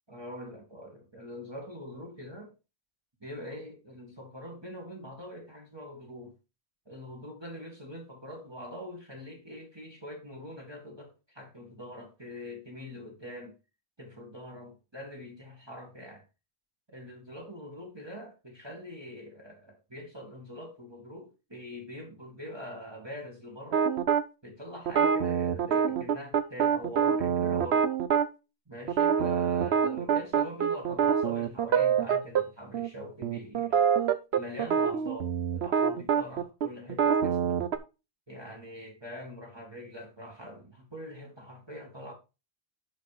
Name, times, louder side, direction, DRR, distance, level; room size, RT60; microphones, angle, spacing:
voice 1, 0.1-2.5 3.2-6.4 6.9-13.6 14.0-16.2 16.9-23.9 24.4-27.9 28.7-33.8 34.3-37.6 38.3-42.1, equal, 25° right, 2.0 m, -44 dB
sound 1, 23.7-24.2 24.9-28.3 28.9-32.4 32.7-32.9 33.2-37.8, right 7 dB, 70° right, 1.0 m, -26 dB
11.5 x 4.2 x 4.9 m
omnidirectional pair, 1.1 m